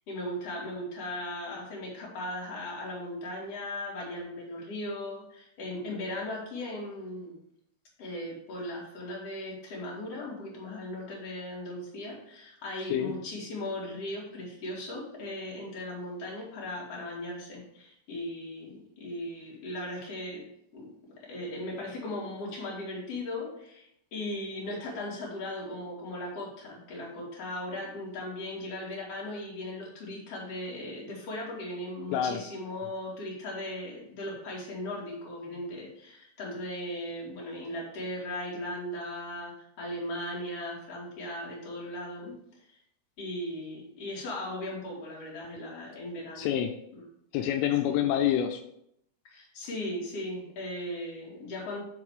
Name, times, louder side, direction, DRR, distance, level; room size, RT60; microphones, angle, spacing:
voice 1, 0.1-7.4 8.0-20.4 20.7-42.3 42.7-42.8 43.2-46.5 46.9-47.0 47.8-48.0 49.2-51.8, left 1 dB, 40° left, -4 dB, 3.0 m, -38 dB
voice 2, 46.4-46.7 47.3-48.6, left 10 dB, 85° left, 5 dB, 3.0 m, -27 dB
11.5 x 3.9 x 4.9 m, 0.75 s
omnidirectional pair, 5.5 m